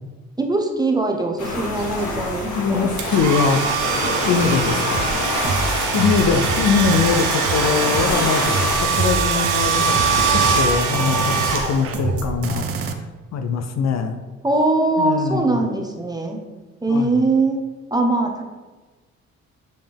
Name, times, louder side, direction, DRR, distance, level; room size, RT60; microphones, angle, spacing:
voice 1, 0.4-2.9 14.4-16.4 16.8-17.6 17.9-18.4, right 2 dB, 15° right, 3 dB, 0.8 m, -21 dB
sound 1, 1.4-8.8, left 1 dB, 80° left, 1.7 m, -26 dB
voice 2, 2.5-3.8 4.2-5.1 5.9-13.1 13.3-14.1 15.0-15.6 16.9-17.2, left 5 dB, 60° left, 7 dB, 0.6 m, -22 dB
Domestic sounds home sounds, 3.0-12.1, right 5 dB, 80° right, 0.9 m, -22 dB
sound 2, 4.9-12.9, right 4 dB, 50° right, 0.6 m, -27 dB
7.7 x 3.5 x 3.4 m, 1.3 s
cardioid pair, 90°, 30 cm